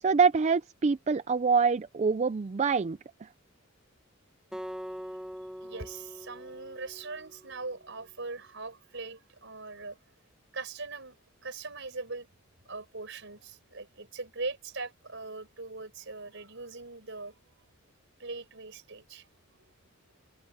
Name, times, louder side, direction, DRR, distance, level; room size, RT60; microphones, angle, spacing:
voice 1, 0.0-3.3, right 5 dB, 35° right, 0.4 m, -25 dB
Acoustic guitar, 4.5-7.8, equal, 5° right, 1.3 m, -43 dB
voice 2, 5.6-10.0 10.5-12.3 12.7-17.4 18.2-19.3, right 3 dB, 60° right, 5.9 m, -41 dB
head